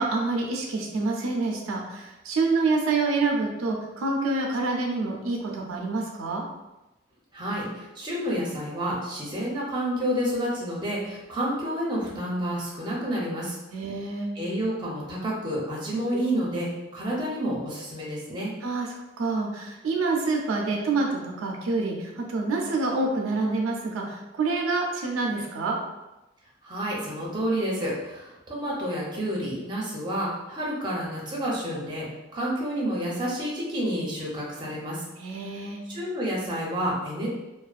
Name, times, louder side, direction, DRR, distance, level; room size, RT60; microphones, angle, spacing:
voice 1, 0.0-6.4 13.7-14.3 18.6-18.9 19.2-25.8 35.2-35.8, right 3 dB, 85° right, 1 dB, 0.4 m, -27 dB
voice 2, 7.3-13.6 14.4-18.5 26.6-32.1 32.3-35.0 35.9-37.3, equal, 20° right, -5 dB, 0.5 m, -29 dB
2.3 x 2.2 x 2.4 m, 1.0 s
head